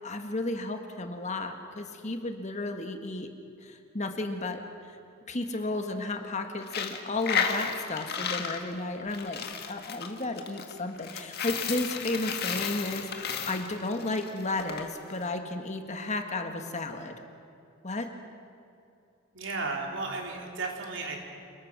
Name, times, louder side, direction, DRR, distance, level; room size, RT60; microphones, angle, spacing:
voice 1, 0.0-3.3 3.6-4.6 5.3-9.4 9.7-17.1 17.8-18.1, left 2 dB, 35° left, 5 dB, 1.7 m, -33 dB
Coin (dropping), 6.6-14.8, left 7 dB, 50° left, 1.8 m, -33 dB
voice 2, 19.3-21.2, right 3 dB, 65° right, 1 dB, 3.7 m, -34 dB
28.0 x 21.5 x 6.2 m, 2.6 s
head